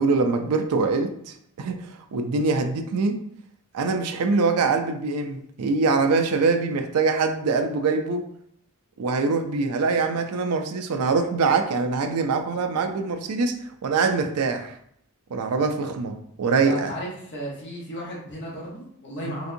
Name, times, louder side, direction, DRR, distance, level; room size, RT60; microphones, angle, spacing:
voice 1, 0.0-3.2 3.7-8.2 9.0-13.5 13.8-14.7 15.3-16.9 19.3-19.4, right 4 dB, 85° right, 6 dB, 0.4 m, -23 dB
voice 2, 16.6-19.5, equal, 50° left, -4 dB, 1.0 m, -34 dB
4.0 x 2.5 x 2.6 m, 0.68 s
head